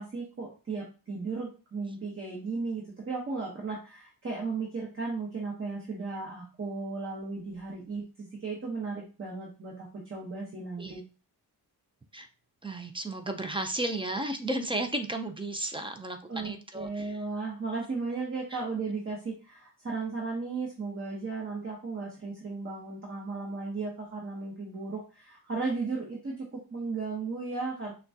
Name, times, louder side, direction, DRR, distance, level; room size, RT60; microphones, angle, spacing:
voice 1, 0.0-11.0 16.3-27.9, right 4 dB, 30° right, -2 dB, 0.9 m, -35 dB
voice 2, 12.6-17.2 18.5-18.6, right 1 dB, 15° right, 6 dB, 0.4 m, -34 dB
5.9 x 2.3 x 2.7 m, 0.34 s
wide cardioid pair, 130°, 41 cm